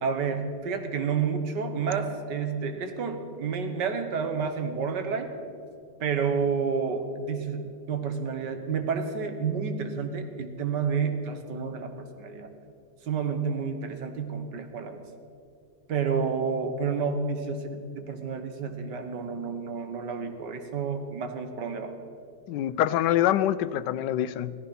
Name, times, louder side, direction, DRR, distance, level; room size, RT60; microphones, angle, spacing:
voice 1, 0.0-5.3 6.0-12.5 13.0-15.0 15.9-22.0, right 5 dB, 80° right, 7 dB, 1.9 m, -30 dB
voice 2, 22.5-24.6, left 12 dB, 90° left, 15 dB, 1.2 m, -25 dB
16.5 x 14.0 x 5.6 m, 2.5 s
omnidirectional pair, 1.8 m